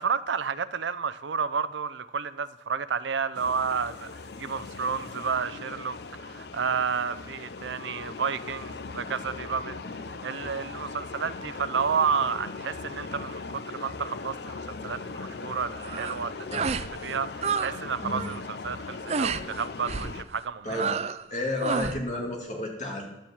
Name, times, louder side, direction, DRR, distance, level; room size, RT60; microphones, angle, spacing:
voice 1, 0.0-16.5 17.0-20.8, right 6 dB, 85° right, 14 dB, 0.6 m, -31 dB
sound 1, 3.3-20.2, left 4 dB, 65° left, 0.6 m, -39 dB
sound 2, 15.8-16.2 16.5-16.9 17.2-17.8 18.0-18.4 19.1-19.4 19.9-20.1 20.7-21.2 21.6-22.0, right 5 dB, 35° right, 0.4 m, -30 dB
voice 2, 21.3-23.1, left 1 dB, 40° left, 0 dB, 2.2 m, -31 dB
11.0 x 7.5 x 7.2 m, 0.97 s
head